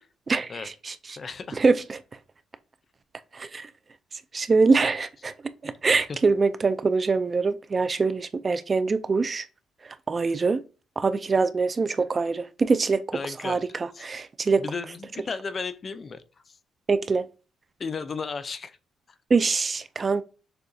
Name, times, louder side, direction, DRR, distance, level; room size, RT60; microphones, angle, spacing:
voice 1, 0.3-0.9 1.6-2.0 3.3-3.7 4.3-9.4 10.1-10.6 11.0-13.2 13.4-13.6 14.0-14.6 16.9-17.2 19.3-20.2, right 4 dB, 35° right, 0.3 m, -24 dB
voice 2, 1.2-1.6 5.6-5.7 6.1-6.2 13.1-14.0 14.6-16.6 17.8-18.8, left 5 dB, 40° left, 0.4 m, -35 dB
6.7 x 2.3 x 2.6 m
cardioid pair, 90°, 0 cm